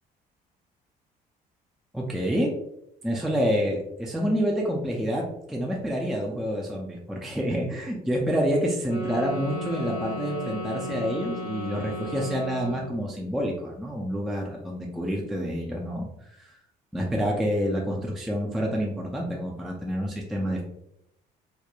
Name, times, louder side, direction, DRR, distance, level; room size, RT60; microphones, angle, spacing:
voice 1, 1.9-2.5 3.0-16.1 16.4-16.6 16.9-20.6, equal, ahead, -2 dB, 0.3 m, -28 dB
sound 1, 8.8-13.1, equal, 55° left, 1.0 m, -34 dB
2.9 x 2.1 x 2.2 m, 0.80 s
cardioid pair, 110°, 17 cm